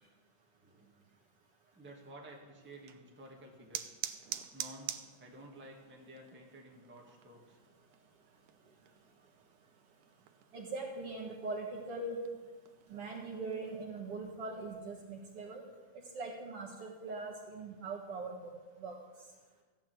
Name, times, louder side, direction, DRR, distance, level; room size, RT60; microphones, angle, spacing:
voice 1, 0.6-1.1 1.7-4.0 4.5-7.6 9.1-9.5, right 1 dB, 5° right, -2 dB, 1.8 m, -53 dB
sound 1, 2.7-13.9, right 12 dB, 90° right, 2.2 m, -48 dB
voice 2, 10.5-12.2 12.9-15.6 16.1-18.5 18.8-18.9, right 3 dB, 55° right, 0 dB, 2.2 m, -41 dB
15.0 x 9.4 x 7.7 m, 1.3 s
omnidirectional pair, 3.5 m